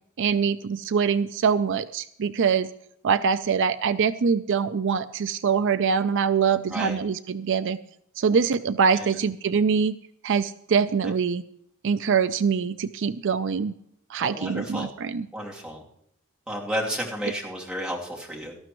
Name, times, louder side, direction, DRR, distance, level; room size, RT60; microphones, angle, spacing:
voice 1, 0.2-2.7 3.0-7.8 8.2-10.0 10.2-11.4 11.8-13.7 14.1-15.3, right 6 dB, 60° right, 12 dB, 0.5 m, -24 dB
voice 2, 6.6-7.0 8.9-9.2 11.0-11.1 14.2-14.9 15.3-15.8 16.5-18.6, equal, 5° right, -3 dB, 2.9 m, -32 dB
18.5 x 13.5 x 3.1 m, 0.74 s
head